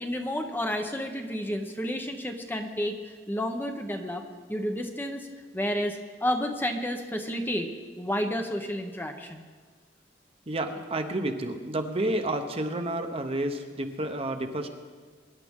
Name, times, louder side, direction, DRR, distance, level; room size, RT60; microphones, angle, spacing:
voice 1, 0.0-5.3 5.5-7.7 8.0-9.4, equal, 10° left, 4 dB, 0.8 m, -31 dB
voice 2, 10.5-14.7, right 1 dB, 30° right, 6 dB, 0.9 m, -30 dB
23.0 x 10.5 x 3.6 m, 1.5 s
head